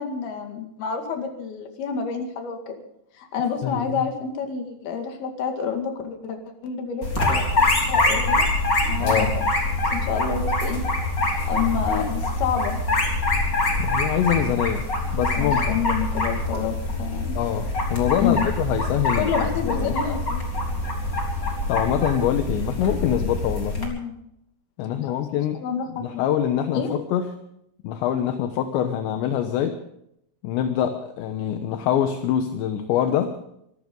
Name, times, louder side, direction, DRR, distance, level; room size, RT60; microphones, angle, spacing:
voice 1, 0.0-2.8 3.2-6.4 6.6-8.5 8.9-9.4 9.9-10.8 11.5-12.8 15.2-17.4 18.2-18.4 19.2-20.4 23.8-24.2 25.0-25.1 25.5-26.3 26.7-26.9, left 6 dB, 60° left, 4 dB, 3.8 m, -28 dB
voice 2, 3.6-4.1 9.0-9.3 13.8-15.8 17.4-19.3 19.6-20.0 21.7-23.8 24.8-25.6 26.0-27.3 27.8-29.8 30.4-33.4, left 9 dB, 75° left, 7 dB, 3.2 m, -24 dB
sound 1, 7.0-23.9, left 2 dB, 25° left, 3.7 m, -24 dB
24.5 x 14.5 x 3.9 m, 0.75 s
omnidirectional pair, 5.4 m